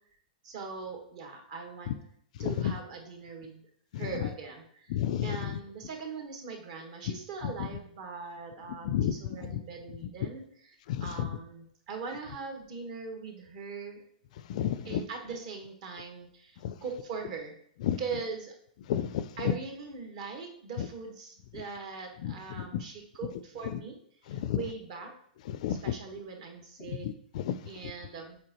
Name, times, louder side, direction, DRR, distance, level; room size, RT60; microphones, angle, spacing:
voice 1, 0.4-1.9 2.4-3.6 3.9-14.0 14.8-17.6 18.0-18.6 19.4-24.0 24.3-25.1 25.7-27.1 27.6-28.4, right 5 dB, 50° right, 3 dB, 1.4 m, -41 dB
voice 2, 4.9-5.5 8.8-9.1 9.4-9.5 10.2-10.3 10.9-11.3 14.5-15.0 16.6-16.7 17.8-18.0 18.9-19.3 22.2-22.8 24.3-24.6 25.5-25.8 27.0-27.5, left 10 dB, 50° left, 14 dB, 0.3 m, -31 dB
7.7 x 4.4 x 3.0 m, 0.65 s
hypercardioid pair, 155°, 5 cm